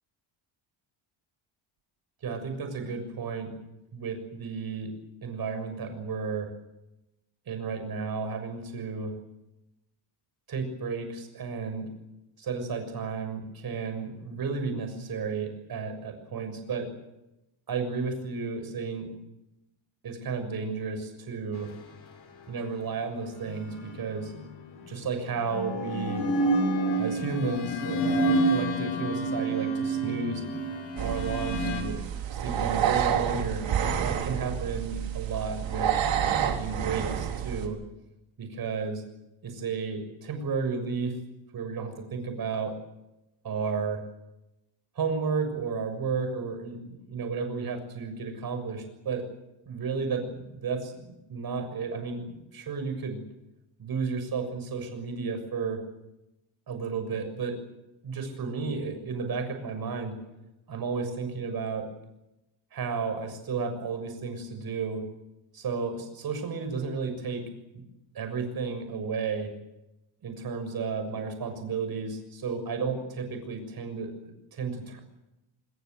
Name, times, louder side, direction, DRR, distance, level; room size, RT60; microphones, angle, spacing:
voice 1, 2.2-3.5 3.9-4.9 5.2-6.5 7.5-9.1 10.5-11.9 12.4-16.9 17.7-19.1 20.0-21.7 22.5-24.3 24.9-26.2 27.0-30.4 31.0-32.0 32.3-33.6 34.0-35.9 36.2-37.8 38.4-39.0 39.4-41.2 41.5-42.7 43.4-44.0 44.9-49.2 49.6-53.2 53.8-55.8 56.7-57.5 58.0-60.1 60.7-61.8 62.7-65.0 65.5-67.4 67.7-67.8 68.1-69.5 70.2-74.1 74.5-75.0, right 5 dB, 45° right, 7 dB, 6.8 m, -33 dB
sound 1, 23.5-24.4 25.3-31.8, right 1 dB, 60° left, 6.9 m, -28 dB
sound 2, 31.0-37.7, right 9 dB, 60° right, 4.2 m, -29 dB
26.0 x 21.5 x 8.1 m, 0.92 s
cardioid pair, 160°, 50 cm